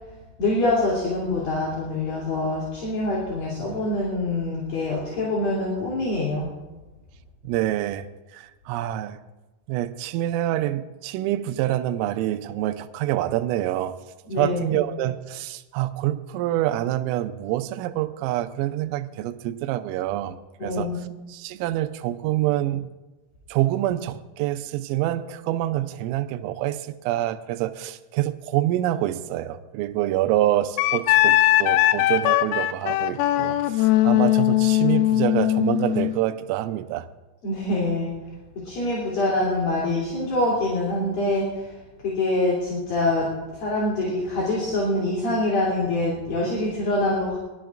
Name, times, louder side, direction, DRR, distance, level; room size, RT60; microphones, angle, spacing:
voice 1, 0.4-6.5 14.3-14.8 20.6-21.0 37.4-38.1 38.5-41.6 42.0-43.3 43.5-47.4, left 2 dB, 50° left, -5 dB, 4.4 m, -25 dB
voice 2, 7.4-8.1 8.3-9.2 9.7-13.9 14.4-22.9 23.5-37.1, right 14 dB, 85° right, 9 dB, 3.3 m, -26 dB
Wind instrument woodwind instrument, 30.8-36.1, left 15 dB, 85° left, 3.2 m, -20 dB
23.5 x 17.0 x 2.5 m, 1.1 s
omnidirectional pair, 5.9 m